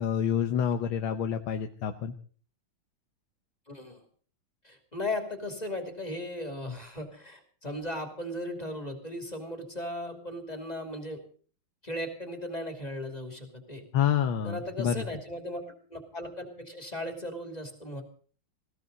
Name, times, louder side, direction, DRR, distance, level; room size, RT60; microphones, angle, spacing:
voice 1, 0.0-2.1 13.9-15.0, left 8 dB, 75° left, 7 dB, 1.7 m, -28 dB
voice 2, 3.7-4.0 4.6-11.2 11.8-13.8 14.4-18.0, left 1 dB, 20° left, 5 dB, 2.8 m, -37 dB
20.0 x 16.5 x 4.0 m, 0.43 s
omnidirectional pair, 2.3 m